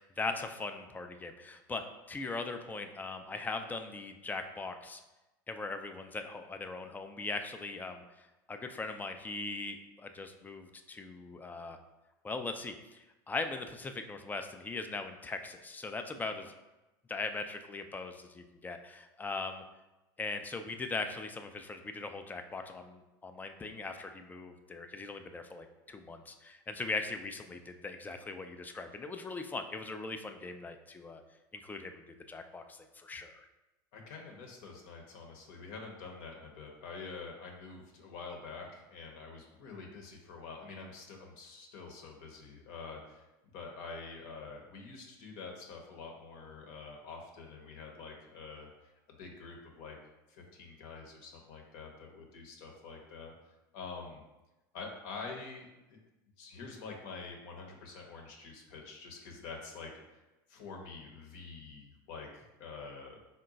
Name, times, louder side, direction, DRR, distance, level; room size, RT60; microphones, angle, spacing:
voice 1, 0.0-5.0 5.5-11.8 12.2-16.5 17.1-19.6 20.2-31.2 31.5-33.5, left 3 dB, 15° left, 7 dB, 0.3 m, -40 dB
voice 2, 33.9-43.3 43.5-50.0 50.3-53.3 53.7-54.2 54.7-56.0 56.4-60.2 60.5-63.2, left 4 dB, 65° left, 1 dB, 0.8 m, -47 dB
3.7 x 2.2 x 3.9 m, 1.0 s
hypercardioid pair, 100°, 12 cm